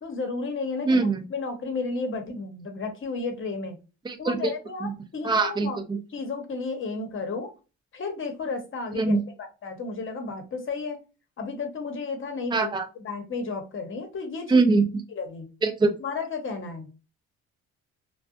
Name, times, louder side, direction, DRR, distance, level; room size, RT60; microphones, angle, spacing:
voice 1, 0.0-3.8 4.2-5.8 6.1-7.5 7.9-9.2 9.6-11.0 11.4-12.7 13.0-14.6 15.1-15.5 16.0-16.9, left 4 dB, 40° left, 5 dB, 0.9 m, -33 dB
voice 2, 0.8-1.2 4.0-4.5 4.8-4.9 5.2-6.0 8.9-9.2 12.5-12.9 14.5-15.0 15.6-15.9, right 3 dB, 15° right, 6 dB, 0.5 m, -23 dB
2.5 x 2.2 x 2.4 m, 0.30 s
cardioid pair, 90°, 30 cm